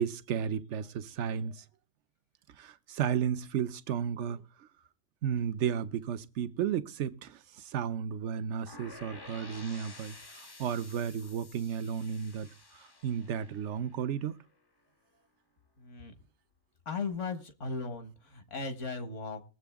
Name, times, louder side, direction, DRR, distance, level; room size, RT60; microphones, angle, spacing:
voice 1, 0.0-1.6 2.6-4.4 5.2-12.5 12.8-14.3, right 8 dB, 65° right, 1.0 m, -33 dB
sound 1, 8.7-14.5, left 3 dB, 20° left, 0.7 m, -51 dB
voice 2, 15.8-16.1 16.8-19.4, left 4 dB, 65° left, 1.7 m, -37 dB
20.5 x 7.7 x 3.5 m
omnidirectional pair, 1.4 m